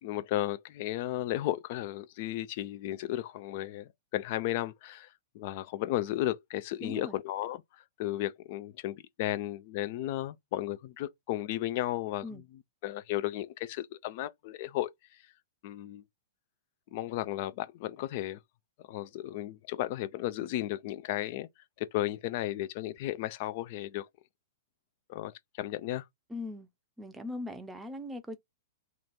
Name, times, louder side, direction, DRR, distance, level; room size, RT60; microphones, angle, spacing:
voice 1, 0.0-5.1 5.3-7.6 8.0-12.4 12.8-14.9 15.6-16.0 16.9-18.4 18.9-21.5 21.8-24.1 25.1-26.1, left 14 dB, 50° left, 0.4 m, -34 dB
voice 2, 6.8-7.2 12.2-12.4 26.3-26.7 27.0-28.4, left 2 dB, 10° right, 0.6 m, -40 dB
2.9 x 2.4 x 4.1 m
figure-of-eight pair, 105°, 0 cm